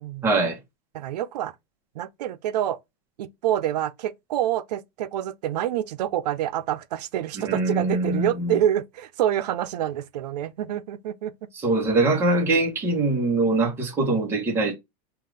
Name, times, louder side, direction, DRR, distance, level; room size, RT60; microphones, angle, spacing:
voice 1, 0.2-0.6 7.4-8.6 11.5-14.7, right 2 dB, 10° right, 1.0 m, -23 dB
voice 2, 0.9-1.5 2.0-2.8 3.2-11.3, right 11 dB, 85° right, 0.5 m, -27 dB
5.6 x 2.5 x 3.2 m
supercardioid pair, 175°, 20 cm